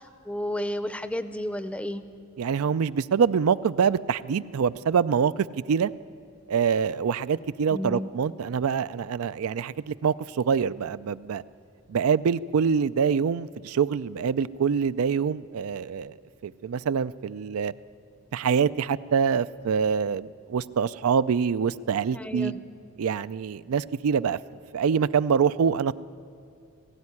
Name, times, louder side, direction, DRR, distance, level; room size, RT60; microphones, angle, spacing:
voice 1, 0.2-2.0 7.7-8.1 22.1-22.6, left 1 dB, 5° left, 12 dB, 0.5 m, -31 dB
voice 2, 2.4-5.3 5.7-5.9 6.5-11.4 11.9-16.2 16.4-17.7 18.3-22.5 23.0-24.4 24.7-25.9, right 6 dB, 90° right, 16 dB, 0.4 m, -25 dB
17.5 x 16.0 x 9.7 m, 2.4 s
head